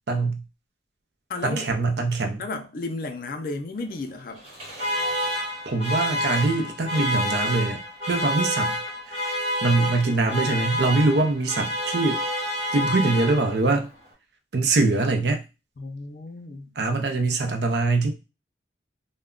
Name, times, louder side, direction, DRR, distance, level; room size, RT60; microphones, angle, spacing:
voice 1, 0.1-0.4 1.4-2.4 5.7-8.8 9.1-9.2 9.6-12.2 12.7-13.9 14.5-15.4 16.8-18.1, right 3 dB, 75° right, 0.5 m, -23 dB
voice 2, 1.3-1.7 2.4-4.5 15.8-16.7, left 3 dB, 50° left, 0.4 m, -33 dB
Alarm, 4.4-13.8, equal, 35° right, 1.2 m, -28 dB
2.2 x 2.1 x 3.5 m
head